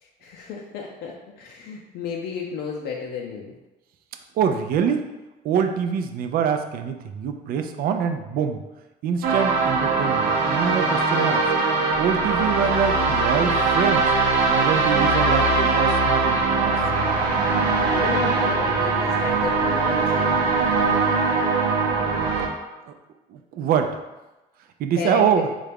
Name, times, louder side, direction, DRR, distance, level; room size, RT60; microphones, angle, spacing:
voice 1, 0.0-3.5 17.9-20.5 25.0-25.3, left 6 dB, 85° left, -1 dB, 0.5 m, -32 dB
voice 2, 4.4-5.0 5.4-8.6 9.0-11.4 12.0-14.1 14.5-16.8 22.9-23.0 23.3-24.0 24.8-25.5, right 7 dB, 60° right, 6 dB, 0.4 m, -24 dB
sound 1, 9.2-22.5, right 3 dB, 85° right, 0.8 m, -21 dB
4.3 x 2.4 x 3.4 m, 1.0 s
cardioid pair, 110°, 17 cm